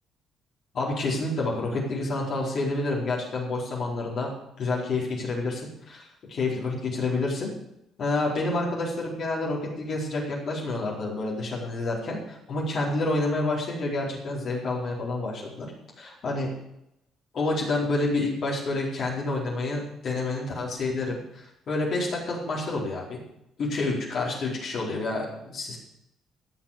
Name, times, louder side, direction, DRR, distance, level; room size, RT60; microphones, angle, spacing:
voice 1, 0.7-4.3 4.6-7.5 8.0-15.7 16.0-16.5 17.3-23.2 23.6-25.8, left 2 dB, 55° left, -3 dB, 4.4 m, -28 dB
16.5 x 6.4 x 6.7 m, 0.83 s
hypercardioid pair, 55°, 0 cm